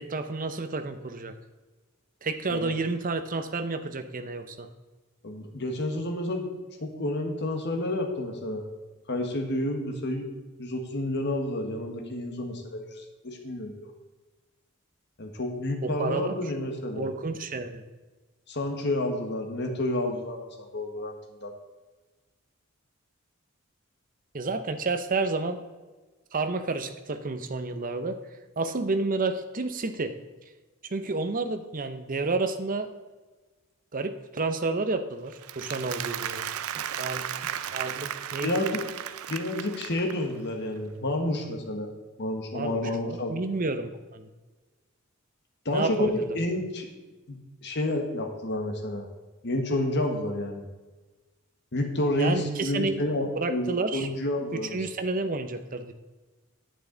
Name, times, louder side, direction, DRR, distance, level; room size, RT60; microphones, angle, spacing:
voice 1, 0.0-1.3 2.2-4.7 15.8-16.3 16.9-17.8 24.3-25.6 26.3-28.2 28.6-30.2 30.8-32.9 33.9-36.5 36.7-37.3 37.7-38.6 42.5-44.3 45.7-46.4 52.2-53.0 53.4-54.1 54.5-55.9, right 3 dB, 40° right, 8 dB, 0.7 m, -30 dB
voice 2, 5.2-6.5 6.8-8.7 9.1-10.3 10.6-13.9 15.2-17.1 18.5-21.5 38.4-38.8 39.3-41.9 42.2-43.4 45.6-46.9 47.3-49.1 49.4-50.6 51.7-54.8, left 1 dB, 55° left, 3 dB, 1.5 m, -30 dB
Applause, 35.3-40.4, right 10 dB, 85° right, 0.5 m, -35 dB
10.0 x 8.4 x 3.9 m, 1.2 s
head